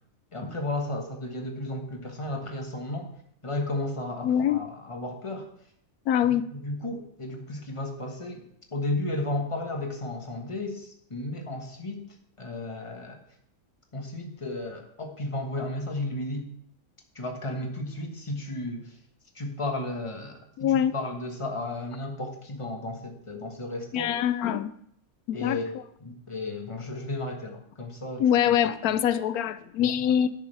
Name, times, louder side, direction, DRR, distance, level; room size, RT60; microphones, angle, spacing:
voice 1, 0.3-3.1 3.4-5.5 6.2-12.0 12.4-13.2 13.9-16.4 17.1-18.9 19.3-24.2 25.3-28.6 29.8-30.1, left 2 dB, 20° left, 2 dB, 1.4 m, -34 dB
voice 2, 4.2-4.6 6.1-6.5 20.6-20.9 23.9-24.7 25.3-25.6 28.2-30.3, left 10 dB, 85° left, 13 dB, 1.1 m, -24 dB
10.5 x 9.5 x 3.4 m, 0.69 s
omnidirectional pair, 1.5 m